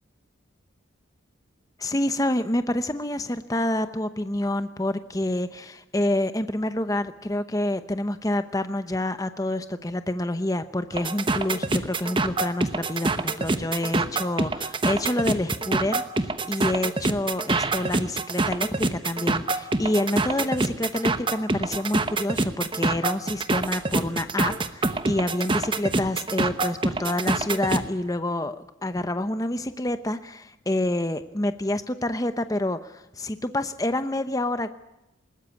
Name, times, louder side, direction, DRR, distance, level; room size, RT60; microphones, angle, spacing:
voice 1, 1.8-34.7, left 1 dB, 15° left, 10 dB, 0.8 m, -28 dB
sound 1, 10.9-27.9, right 2 dB, 25° right, 1.0 m, -26 dB
21.0 x 19.5 x 8.4 m, 0.88 s
head